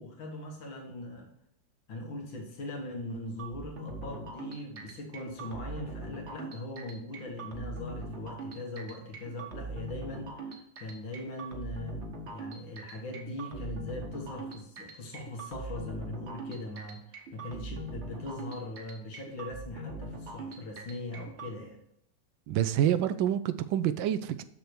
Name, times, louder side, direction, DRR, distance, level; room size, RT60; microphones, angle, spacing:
voice 1, 0.0-1.3 1.9-21.8, left 1 dB, 85° left, 2.3 m, -40 dB
sound 1, 3.4-21.5, right 2 dB, 40° right, 1.2 m, -41 dB
voice 2, 22.5-24.4, right 11 dB, 85° right, 1.4 m, -27 dB
6.8 x 6.7 x 4.5 m
omnidirectional pair, 2.1 m